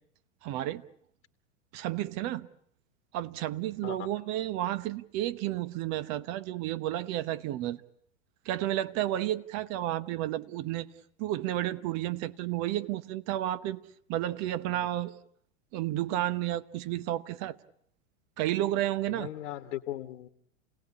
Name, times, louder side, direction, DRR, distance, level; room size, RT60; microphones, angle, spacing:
voice 1, 0.4-0.8 1.7-2.5 3.1-7.8 8.4-10.9 11.2-13.8 14.1-15.2 15.7-17.6 18.4-19.3, right 14 dB, 45° right, 1.2 m, -31 dB
voice 2, 19.1-20.3, left 13 dB, 70° left, 1.6 m, -38 dB
29.0 x 18.0 x 9.7 m
hypercardioid pair, 120°, 39 cm